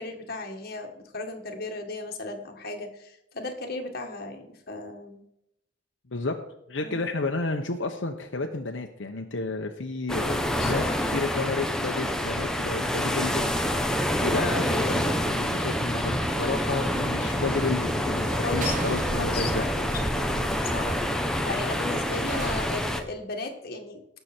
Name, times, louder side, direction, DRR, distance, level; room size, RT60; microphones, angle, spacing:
voice 1, 0.0-5.2 6.8-7.1 10.5-10.9 18.3-18.8 19.2-24.0, left 3 dB, 55° left, 3 dB, 1.9 m, -36 dB
voice 2, 6.7-13.5 13.8-19.6, left 3 dB, 80° left, 3 dB, 1.0 m, -31 dB
sound 1, 10.1-23.0, equal, 5° left, 1.0 m, -27 dB
sound 2, 16.8-22.6, right 4 dB, 45° right, 0.9 m, -41 dB
18.0 x 6.9 x 4.5 m, 0.80 s
head